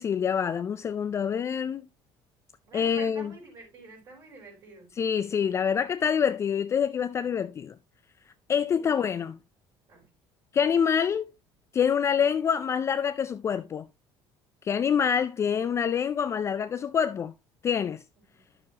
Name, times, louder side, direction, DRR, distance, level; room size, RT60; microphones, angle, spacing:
voice 1, 0.0-1.8 2.7-3.3 5.0-7.7 8.5-9.4 10.5-11.3 11.7-13.9 14.6-17.3 17.6-18.0, left 7 dB, 30° left, 0.4 m, -26 dB
voice 2, 2.6-5.0 8.7-9.1 9.9-10.1 18.3-18.5, right 3 dB, 45° right, 4.6 m, -48 dB
9.7 x 6.8 x 2.9 m
cardioid pair, 140°, 10 cm